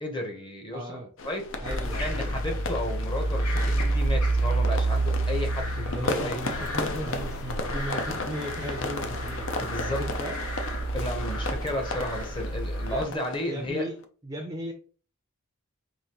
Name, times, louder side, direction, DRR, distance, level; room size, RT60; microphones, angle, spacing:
voice 1, 0.0-1.0 1.2-1.7 2.0-6.7 9.6-10.1 10.9-13.9, left 1 dB, 20° left, 2 dB, 0.8 m, -33 dB
voice 2, 0.7-1.1 1.6-2.4 5.8-10.4 12.9-14.0 14.2-14.7, right 1 dB, 15° right, 2 dB, 0.5 m, -36 dB
sound 1, 1.2-14.0, left 2 dB, 55° left, 0.5 m, -35 dB
sound 2, 1.6-13.0, right 2 dB, 85° left, 1.1 m, -29 dB
4.9 x 2.6 x 2.9 m, 0.39 s
head